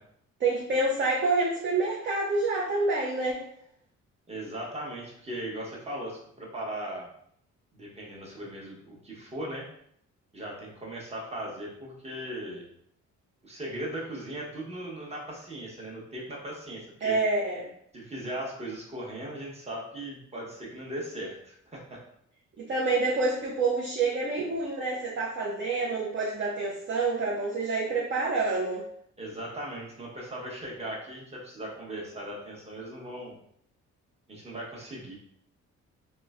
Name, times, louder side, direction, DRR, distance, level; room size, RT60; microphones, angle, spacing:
voice 1, 0.4-3.5 17.0-17.7 22.6-28.8, right 3 dB, 40° right, -4 dB, 0.5 m, -27 dB
voice 2, 4.3-7.1 7.7-9.7 10.3-12.6 13.4-17.2 17.9-22.0 29.2-33.4 34.3-35.2, right 1 dB, 20° right, -3 dB, 0.9 m, -38 dB
3.0 x 2.1 x 2.3 m, 0.68 s
cardioid pair, 90°, 30 cm